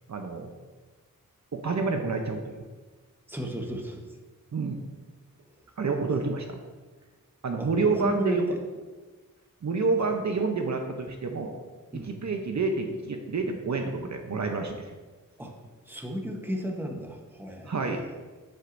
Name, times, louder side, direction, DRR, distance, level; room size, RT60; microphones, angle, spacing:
voice 1, 0.1-0.5 1.5-2.6 4.5-4.8 5.8-6.6 7.4-8.5 9.6-11.5 12.0-14.8 17.7-18.1, right 4 dB, 55° right, 4 dB, 0.7 m, -28 dB
voice 2, 3.3-4.0 7.6-8.6 10.0-10.1 11.9-12.2 15.4-15.6 15.9-18.0, equal, 5° right, 2 dB, 1.0 m, -35 dB
9.8 x 7.8 x 2.6 m, 1.3 s
wide cardioid pair, 115°, 34 cm